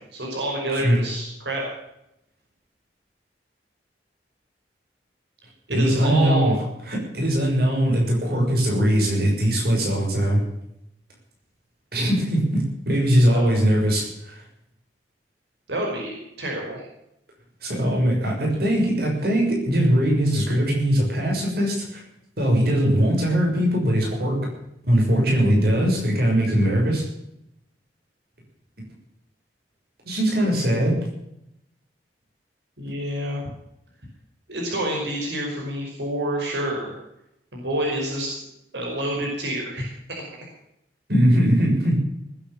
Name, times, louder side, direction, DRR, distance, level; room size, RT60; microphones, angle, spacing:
voice 1, 0.0-1.6 5.7-6.5 13.3-13.5 15.7-16.8 32.8-33.4 34.5-36.9 37.5-38.4 38.7-39.9, right 1 dB, 85° right, -2 dB, 5.3 m, -28 dB
voice 2, 0.7-1.0 5.7-10.4 11.9-14.4 17.6-22.0 22.4-24.5 24.8-27.1 30.0-31.0 41.1-42.0, equal, 60° right, -1 dB, 6.6 m, -21 dB
19.5 x 9.1 x 7.2 m, 0.81 s
head